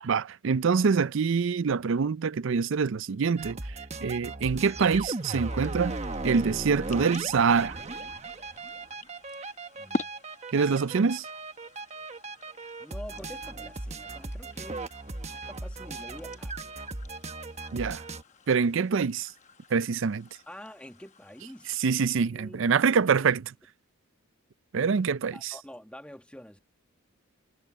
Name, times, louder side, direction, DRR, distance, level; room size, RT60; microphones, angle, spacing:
voice 1, 0.0-3.6 4.0-6.0 6.2-7.8 10.5-11.2 17.7-18.0 18.5-19.3 19.7-20.3 21.8-23.4 24.7-25.5, right 5 dB, 60° right, 0.4 m, -25 dB
sound 1, 3.4-18.2, right 2 dB, 30° right, 1.2 m, -37 dB
sound 2, 4.4-22.3, left 2 dB, 35° left, 0.9 m, -46 dB
voice 2, 9.7-10.1 12.8-14.9 15.3-16.9 20.5-21.8 22.1-23.3 25.3-26.6, equal, 5° left, 1.3 m, -47 dB
head